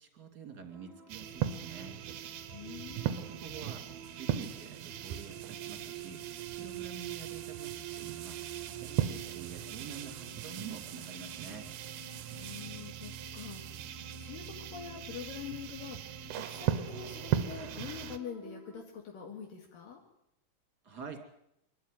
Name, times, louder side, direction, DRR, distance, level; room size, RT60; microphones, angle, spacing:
voice 1, 0.0-2.0 3.0-3.8 4.2-6.2 6.6-8.4 8.6-11.7 20.8-21.2, right 6 dB, 30° right, 5 dB, 2.8 m, -47 dB
sound 1, 0.7-18.8, right 7 dB, 15° right, 2.2 m, -49 dB
sound 2, 1.1-18.2, right 11 dB, 70° right, 2.3 m, -38 dB
voice 2, 2.5-3.3 12.3-13.8 14.2-20.0, left 8 dB, 80° left, 1 dB, 3.8 m, -45 dB
24.5 x 12.5 x 9.2 m, 0.80 s
omnidirectional pair, 4.0 m